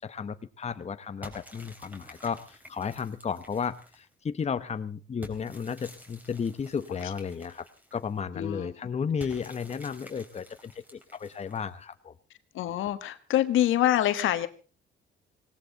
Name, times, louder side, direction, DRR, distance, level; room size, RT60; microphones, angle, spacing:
voice 1, 0.0-7.7 7.9-12.1, left 6 dB, 35° left, 11 dB, 0.9 m, -34 dB
sound 1, 1.2-4.1 5.2-8.2 9.2-11.8, equal, 10° right, 3.8 m, -50 dB
voice 2, 8.3-8.7 12.5-14.5, left 12 dB, 80° left, 11 dB, 1.3 m, -25 dB
18.5 x 18.0 x 3.9 m, 0.34 s
cardioid pair, 90°, 20 cm